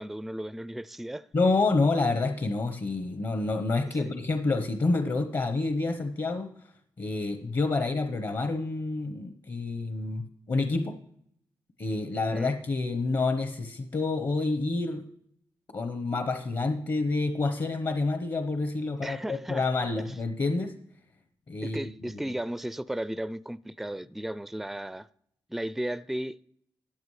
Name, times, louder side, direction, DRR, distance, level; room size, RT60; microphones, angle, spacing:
voice 1, 0.0-1.3 4.0-4.1 12.3-12.5 19.0-19.7 21.6-25.1 25.5-26.4, right 1 dB, ahead, 0.4 m, -35 dB
voice 2, 1.3-6.5 7.0-11.0 11.8-15.0 15.7-20.7 21.5-22.2, left 3 dB, 50° left, 1.0 m, -28 dB
13.0 x 9.4 x 3.2 m
cardioid pair, 50°, 9 cm